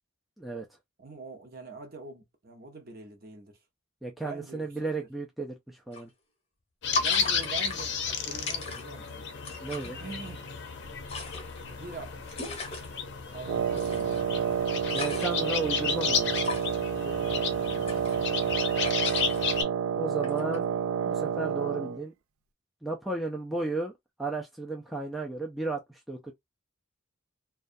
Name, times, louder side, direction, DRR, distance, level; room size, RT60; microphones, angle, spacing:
voice 1, 1.0-3.5 4.2-4.9 6.9-7.9 8.2-9.2 9.8-10.5 11.6-13.0 13.3-14.5 17.0-18.2, right 3 dB, 45° right, 0.8 m, -44 dB
voice 2, 4.0-6.1 9.6-10.0 14.9-16.4 20.0-20.7 21.1-22.1 22.8-23.9 24.2-26.3, right 3 dB, ahead, 0.4 m, -34 dB
sound 1, 5.9-6.0 7.0-9.1 9.4-9.9 10.8-12.9 13.8-14.2 14.6-15.5 16.3-16.8 17.6-18.6 18.8-19.5 20.2-20.6, left 3 dB, 30° left, 0.9 m, -37 dB
sound 2, 6.8-19.6, left 6 dB, 55° left, 0.6 m, -33 dB
Wind instrument woodwind instrument, 13.4-22.0, right 7 dB, 75° right, 0.3 m, -29 dB
2.3 x 2.3 x 2.5 m
head